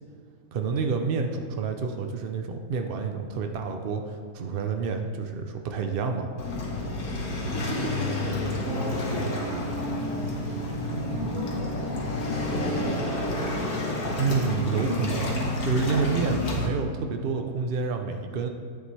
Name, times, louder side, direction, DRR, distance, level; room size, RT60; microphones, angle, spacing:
voice 1, 0.5-6.3 14.2-15.3 15.6-18.5, right 5 dB, 85° right, 5 dB, 0.5 m, -28 dB
Waves surf, 6.4-16.7, left 1 dB, 65° left, 1.8 m, -29 dB
voice 2, 7.5-12.3 12.7-13.7 14.6-15.1, equal, 30° right, -6 dB, 2.4 m, -37 dB
10.5 x 8.0 x 3.3 m, 2.2 s
omnidirectional pair, 1.7 m